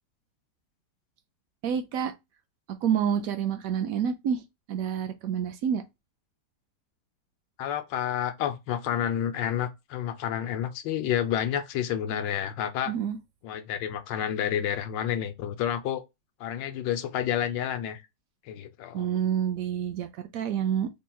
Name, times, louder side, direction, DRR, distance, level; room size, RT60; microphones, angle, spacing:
voice 1, 1.6-2.1 2.7-4.4 4.7-5.8 12.9-13.2 18.9-20.9, right 8 dB, 75° right, 0.8 m, -28 dB
voice 2, 7.6-12.9 13.4-16.0 16.4-18.0 18.5-19.1, left 10 dB, 90° left, 1.3 m, -29 dB
3.6 x 2.3 x 4.2 m
omnidirectional pair, 1.9 m